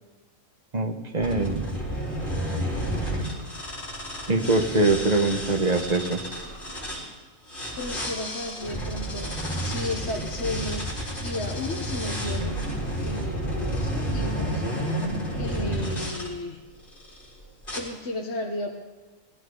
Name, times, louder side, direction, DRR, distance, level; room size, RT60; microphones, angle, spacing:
voice 1, 0.7-1.7 4.3-6.2, right 2 dB, 30° right, 4 dB, 1.1 m, -23 dB
sound 1, 1.2-7.0 7.5-16.3 16.9-17.2 17.6-17.8, equal, 40° left, 4.1 m, -31 dB
voice 2, 7.8-12.6 13.0-14.6 15.3-16.6 17.7-18.7, left 2 dB, 55° left, -1 dB, 1.6 m, -34 dB
21.0 x 16.0 x 4.0 m, 1.2 s
omnidirectional pair, 1.4 m